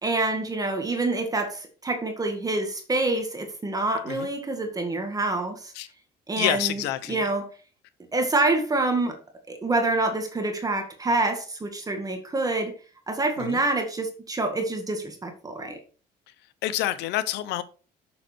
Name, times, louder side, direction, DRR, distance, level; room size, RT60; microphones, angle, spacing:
voice 1, 0.0-5.7 6.3-6.8 7.1-7.5 8.1-9.2 9.5-12.7 13.1-15.8, right 2 dB, 20° right, 1.8 m, -26 dB
voice 2, 6.4-7.3 13.4-13.6 16.6-17.6, left 13 dB, 90° left, 0.8 m, -28 dB
7.2 x 6.4 x 4.5 m
cardioid pair, 110°, 17 cm